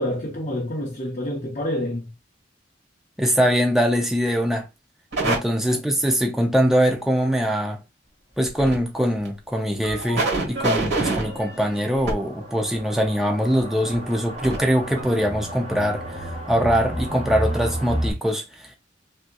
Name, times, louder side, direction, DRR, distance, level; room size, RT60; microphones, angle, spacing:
voice 1, 0.0-2.1 5.6-5.8, left 1 dB, 35° left, 0.6 m, -28 dB
voice 2, 3.2-4.7 5.2-7.8 8.4-18.8, equal, ahead, 0.4 m, -22 dB
sound 1, 5.1-5.4 8.5-8.7 9.2-9.3 9.8-12.1 13.9-14.0 14.4-14.6 15.0-15.1, right 2 dB, 70° right, 1.8 m, -26 dB
sound 2, 9.9-10.0 10.4-10.5 11.0-11.1 12.0-18.1, right 1 dB, 40° right, 1.5 m, -31 dB
3.5 x 2.8 x 2.2 m
head